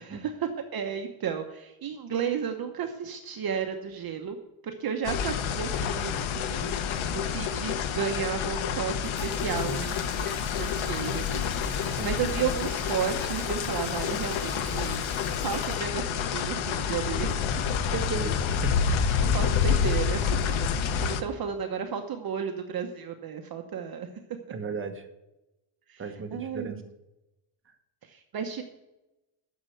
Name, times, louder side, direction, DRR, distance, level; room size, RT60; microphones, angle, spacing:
voice 1, 0.0-4.4 4.6-6.8 7.1-15.0 15.4-17.5 19.2-20.4 20.6-24.1 25.9-26.8 28.0-28.6, right 7 dB, 45° right, 5 dB, 1.0 m, -33 dB
sound 1, 5.0-21.2, left 7 dB, 75° left, 1.1 m, -28 dB
Water tap faucet, 9.0-16.8 17.1-18.1, equal, 5° left, 4.1 m, -45 dB
voice 2, 17.9-19.0 24.5-25.1 26.0-26.8, right 3 dB, 25° right, 5 dB, 1.3 m, -35 dB
9.6 x 6.7 x 7.8 m, 0.97 s
cardioid pair, 140°, 49 cm